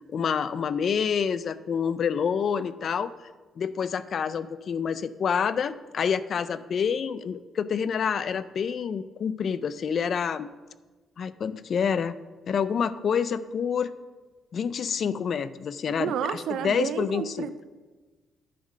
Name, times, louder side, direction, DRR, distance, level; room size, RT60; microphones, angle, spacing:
voice 1, 0.1-3.1 3.6-10.5 11.2-12.1 12.5-14.0 14.5-17.5, left 7 dB, 55° left, 15 dB, 0.4 m, -28 dB
voice 2, 16.0-17.6, right 9 dB, 80° right, 12 dB, 0.5 m, -30 dB
10.5 x 3.7 x 6.3 m, 1.3 s
cardioid pair, 90°, 0 cm